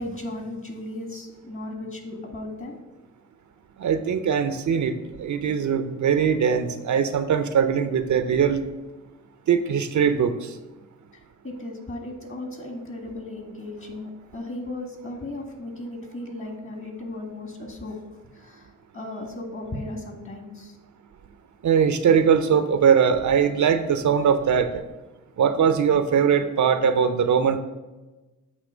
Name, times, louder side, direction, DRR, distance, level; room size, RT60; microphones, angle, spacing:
voice 1, 0.0-2.8 11.4-18.0 18.3-18.7 18.9-20.8, left 2 dB, 40° left, 2 dB, 1.7 m, -36 dB
voice 2, 3.8-8.6 9.5-10.6 21.6-24.8 25.4-27.6, right 7 dB, 60° right, 10 dB, 0.5 m, -21 dB
8.2 x 2.9 x 5.0 m, 1.1 s
cardioid pair, 60°, 34 cm